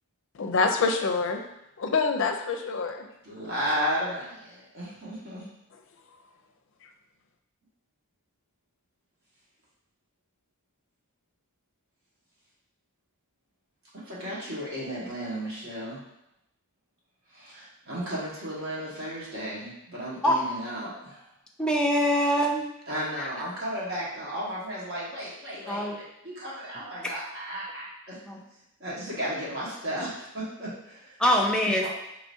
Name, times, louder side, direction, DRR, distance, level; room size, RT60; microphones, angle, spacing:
voice 1, 0.3-1.4 1.8-3.1, left 4 dB, 60° left, 5 dB, 0.5 m, -26 dB
voice 2, 3.2-5.5 14.0-16.0 17.3-21.3 22.9-28.2 28.8-31.2 31.8-31.9, equal, 55° right, -7 dB, 1.4 m, -34 dB
voice 3, 21.6-22.6 23.2-23.3 25.7-25.9 28.3-28.4 31.2-31.9, equal, 5° left, -1 dB, 0.4 m, -23 dB
4.8 x 3.0 x 2.6 m, 0.83 s
head